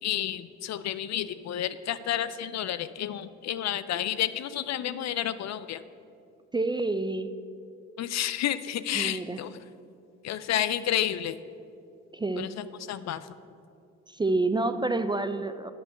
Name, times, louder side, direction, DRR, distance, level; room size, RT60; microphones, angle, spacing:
voice 1, 0.0-5.8 8.0-9.5 10.2-11.4 12.4-13.3, left 11 dB, 55° left, 14 dB, 0.5 m, -30 dB
voice 2, 6.5-7.3 8.9-9.4 12.1-12.5 14.1-15.7, right 2 dB, 15° right, 10 dB, 0.4 m, -28 dB
8.5 x 5.4 x 7.8 m, 2.4 s
supercardioid pair, 65°, 33 cm